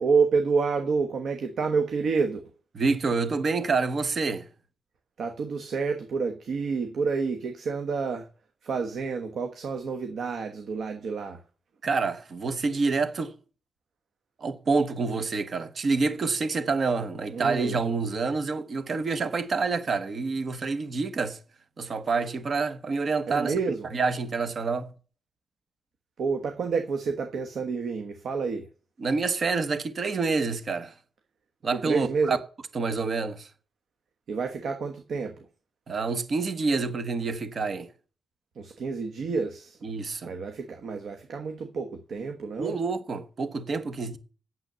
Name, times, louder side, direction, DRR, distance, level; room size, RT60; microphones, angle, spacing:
voice 1, 0.0-2.4 5.2-8.3 8.6-11.4 17.3-17.8 23.3-23.9 26.2-28.7 31.7-32.4 34.3-35.5 38.5-39.8 40.2-42.8, right 5 dB, 65° right, 1.3 m, -29 dB
voice 2, 2.7-4.5 11.8-13.3 14.4-21.4 21.8-23.5 23.9-24.9 29.0-30.9 31.6-32.4 32.7-33.5 35.9-37.9 39.8-40.3 42.6-44.2, right 4 dB, 40° right, 1.3 m, -27 dB
9.1 x 7.6 x 6.8 m
wide cardioid pair, 160°, 0 cm